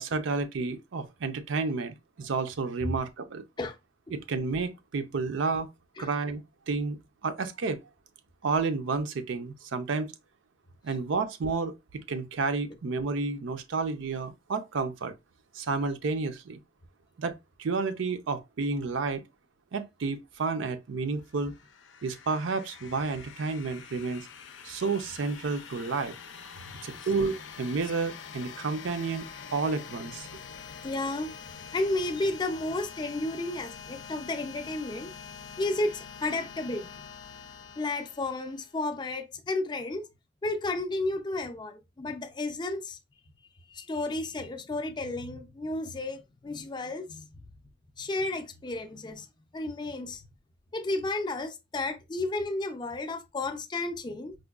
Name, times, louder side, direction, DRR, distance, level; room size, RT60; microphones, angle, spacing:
voice 1, 0.0-3.4 4.1-5.7 6.0-6.4 6.7-7.8 8.4-10.1 10.8-15.1 15.5-16.6 17.2-19.2 19.7-21.5 22.0-24.3 24.6-26.1 26.8-29.3 29.5-30.3, right 4 dB, 80° right, 0.5 m, -31 dB
sound 1, 21.2-38.9, left 6 dB, 80° left, 0.5 m, -45 dB
voice 2, 30.8-31.3 31.7-35.1 35.6-36.9 37.8-40.1 40.4-43.0 43.7-47.3 48.0-49.3 49.5-50.2 50.7-54.4, left 2 dB, 25° left, 0.4 m, -32 dB
4.8 x 2.2 x 2.3 m
head